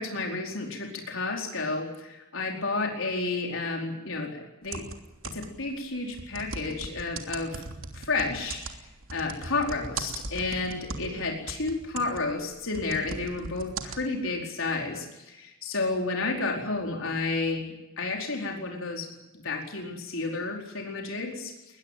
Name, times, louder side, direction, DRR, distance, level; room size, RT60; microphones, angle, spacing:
voice 1, 0.0-4.8 5.2-7.6 7.9-8.8 9.1-21.5, left 3 dB, 65° left, 1 dB, 4.7 m, -31 dB
sound 1, 4.6-5.7 6.1-11.2 11.5-14.0, right 4 dB, 65° right, 3.1 m, -38 dB
21.5 x 21.5 x 9.3 m, 0.97 s
head